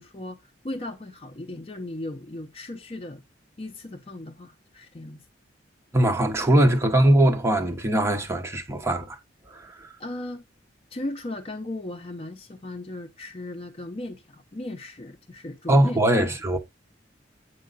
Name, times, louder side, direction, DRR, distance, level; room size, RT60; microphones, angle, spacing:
voice 1, 0.0-3.2 3.6-5.2 10.0-10.4 10.9-16.3, left 1 dB, 30° left, 0.6 m, -37 dB
voice 2, 5.9-9.2 9.5-9.9 15.7-16.6, right 1 dB, 15° right, 1.0 m, -21 dB
8.8 x 4.6 x 3.9 m
head